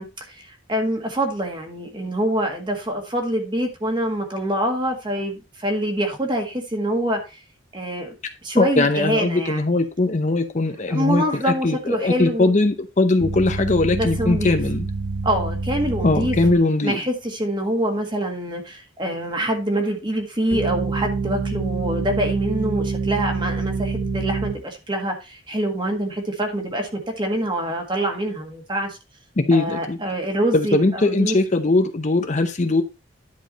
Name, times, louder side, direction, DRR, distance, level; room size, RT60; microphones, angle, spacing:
voice 1, 0.0-7.4 7.7-8.1 8.4-9.8 10.9-12.5 13.9-14.6 15.2-16.4 16.8-29.0 29.5-31.4, right 1 dB, 25° right, 1.8 m, -25 dB
voice 2, 8.6-14.9 16.0-17.0 29.4-30.0 30.5-32.8, left 2 dB, 40° left, 0.7 m, -20 dB
sound 1, 13.2-16.6 20.5-24.6, right 4 dB, 65° right, 1.7 m, -26 dB
10.5 x 4.7 x 4.1 m
head